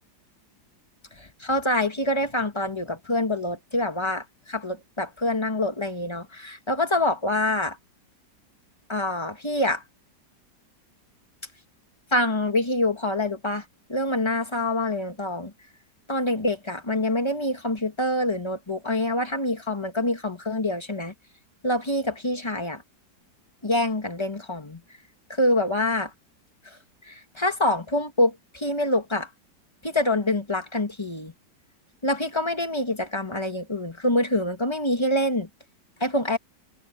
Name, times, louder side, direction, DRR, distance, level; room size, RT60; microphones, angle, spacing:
voice 1, 1.2-7.8 8.9-9.8 12.1-13.6 13.9-15.5 16.1-21.1 21.6-22.8 23.6-24.8 25.3-26.1 26.7-26.8 27.1-29.3 29.8-31.3 32.0-35.5 36.0-36.4, left 1 dB, 15° left, 1.9 m, -26 dB
omnidirectional pair, 1.9 m